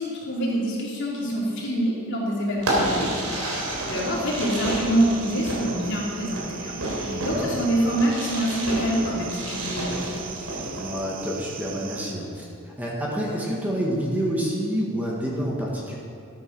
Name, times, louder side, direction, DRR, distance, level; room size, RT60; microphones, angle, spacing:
voice 1, 0.0-10.2, right 1 dB, 55° left, -5 dB, 3.6 m, -26 dB
Fireworks, 2.6-10.9, right 1 dB, 75° right, 3.5 m, -30 dB
sound 1, 3.5-12.1, right 8 dB, 40° right, 0.7 m, -40 dB
voice 2, 7.0-7.5 10.8-16.0, equal, 10° right, -4 dB, 1.7 m, -28 dB
13.5 x 9.3 x 6.1 m, 2.5 s
head